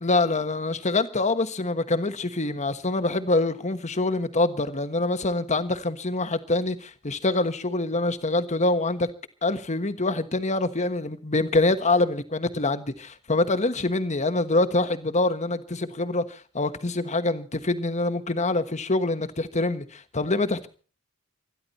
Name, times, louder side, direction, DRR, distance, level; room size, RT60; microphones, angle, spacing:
voice 1, 0.0-9.1 9.4-20.7, left 2 dB, 30° left, 1.3 m, -25 dB
26.5 x 11.0 x 4.2 m
head